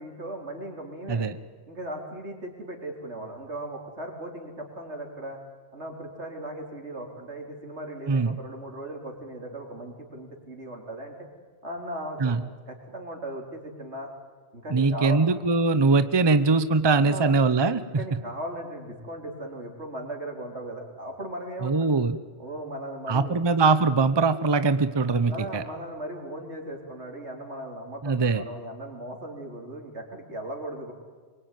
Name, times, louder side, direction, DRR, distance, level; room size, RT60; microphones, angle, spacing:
voice 1, 0.0-1.3 1.7-5.4 5.7-11.2 11.6-12.4 12.7-14.1 14.5-15.2 17.0-17.4 18.0-22.0 22.4-23.4 25.3-30.9, right 1 dB, 85° right, 2 dB, 4.1 m, -37 dB
voice 2, 14.7-18.0 21.6-22.2 23.1-25.6 28.0-28.4, right 4 dB, 25° right, 12 dB, 0.8 m, -22 dB
24.5 x 23.0 x 9.2 m, 1.5 s
omnidirectional pair, 1.1 m